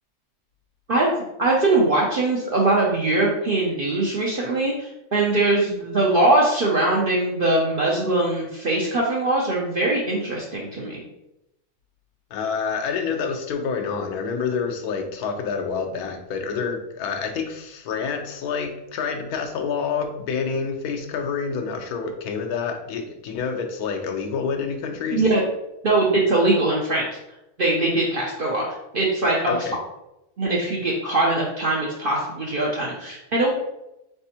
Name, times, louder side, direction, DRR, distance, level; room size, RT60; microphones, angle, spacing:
voice 1, 0.9-11.0 25.1-25.4 25.8-27.1 27.6-28.7 28.9-29.5 30.4-33.5, right 2 dB, 55° right, -3 dB, 0.6 m, -21 dB
voice 2, 12.3-25.2 29.5-29.8, left 5 dB, 80° left, 4 dB, 1.1 m, -28 dB
4.1 x 3.4 x 2.8 m, 0.89 s
omnidirectional pair, 1.6 m